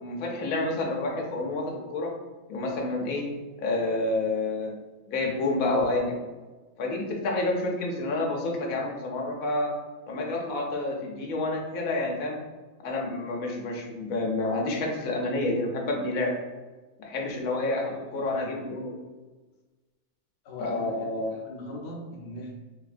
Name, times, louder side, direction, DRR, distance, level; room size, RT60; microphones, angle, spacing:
voice 1, 0.0-2.1 2.5-3.3 3.6-4.7 5.1-6.1 6.8-9.7 10.1-12.4 12.8-16.3 17.0-19.0 20.6-21.3, left 2 dB, 85° left, -1 dB, 1.2 m, -29 dB
voice 2, 17.6-18.5 20.4-22.5, left 1 dB, 50° left, -1 dB, 0.8 m, -41 dB
3.4 x 3.1 x 2.5 m, 1.3 s
omnidirectional pair, 1.4 m